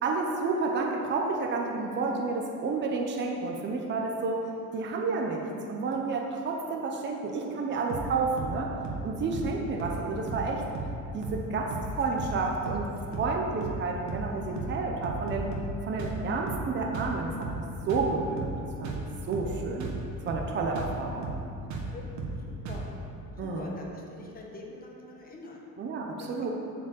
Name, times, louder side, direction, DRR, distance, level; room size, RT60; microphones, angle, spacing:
voice 1, 0.0-4.5 4.7-8.7 9.0-10.6 11.1-15.5 15.8-18.5 18.8-19.9 20.3-21.3 23.4-23.7 25.8-26.5, right 4 dB, 35° right, 1 dB, 0.8 m, -30 dB
sound 1, 7.9-8.1 8.4-8.6 8.8-9.1 9.3-9.5 9.8-10.0 10.3-10.5 10.7-11.0 11.2-11.4 11.7-11.9 12.2-12.4 12.7-12.9 13.1-13.4 13.6-13.8 14.1-14.3 14.6-14.8 15.0-15.7 16.0-16.2 16.5-16.7 16.9-17.2 17.4-17.6 17.9-18.1 18.4-18.6 18.8-19.1 19.3-19.5 19.8-20.0 20.3-20.5 20.8-21.0 21.2-21.4 21.7-21.9 22.2-22.4 22.7-22.9, right 3 dB, 55° right, 1.4 m, -35 dB
voice 2, 22.5-23.0 23.4-25.6 26.2-26.5, left 2 dB, 25° left, -1 dB, 1.3 m, -46 dB
8.1 x 5.1 x 7.0 m, 2.7 s
cardioid pair, 145°, 33 cm